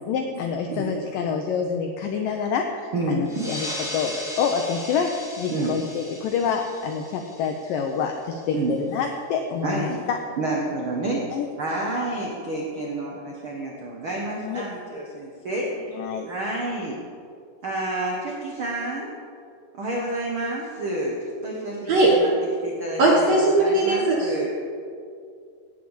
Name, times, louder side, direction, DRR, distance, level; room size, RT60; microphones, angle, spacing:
voice 1, 0.1-3.7 3.9-10.2 11.3-11.5 14.4-14.7 15.9-16.3, left 6 dB, 85° left, 4 dB, 1.9 m, -27 dB
voice 2, 2.9-3.5 5.5-5.7 8.5-8.8 9.6-10.1 10.4-11.2 11.6-17.0 17.6-19.1 19.8-22.3 22.6-24.5, right 2 dB, 90° right, -3 dB, 1.1 m, -29 dB
sound 1, 3.3-8.3, left 1 dB, 5° right, 0.5 m, -37 dB
voice 3, 23.0-24.3, right 2 dB, 60° right, -2 dB, 1.8 m, -19 dB
17.0 x 6.1 x 7.2 m, 2.3 s
omnidirectional pair, 4.8 m